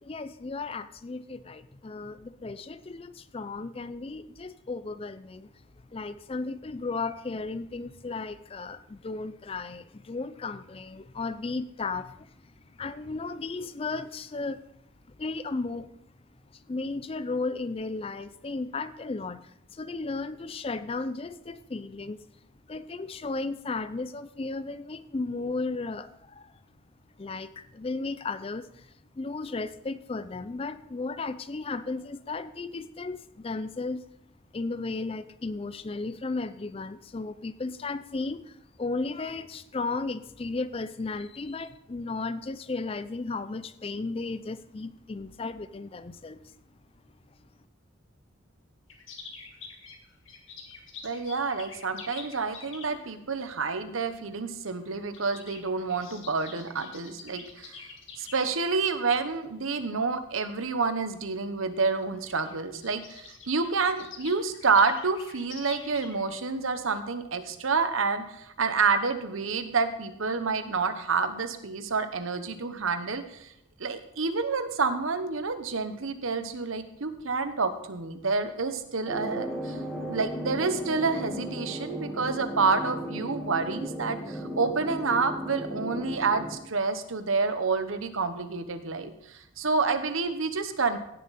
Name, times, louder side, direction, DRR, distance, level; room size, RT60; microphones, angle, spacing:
voice 1, 0.0-5.5 5.9-12.3 12.8-14.6 15.2-15.9 16.5-22.2 22.7-26.5 27.2-28.9 29.2-34.0 34.5-46.4, left 3 dB, 25° left, 14 dB, 0.4 m, -35 dB
sound 1, 48.9-53.1 54.2-54.4 54.7-58.4 59.0-59.4 60.0-60.1 60.4-60.5 61.5-61.6 61.8-61.9 62.1-66.5 66.9-67.0, left 5 dB, 70° left, 1.9 m, -46 dB
voice 2, 51.0-57.8 58.2-73.5 73.8-79.8 80.1-91.0, right 4 dB, 80° right, 10 dB, 1.0 m, -28 dB
sound 2, 79.1-86.6, equal, ahead, 1.7 m, -36 dB
16.0 x 7.1 x 4.1 m, 0.81 s
head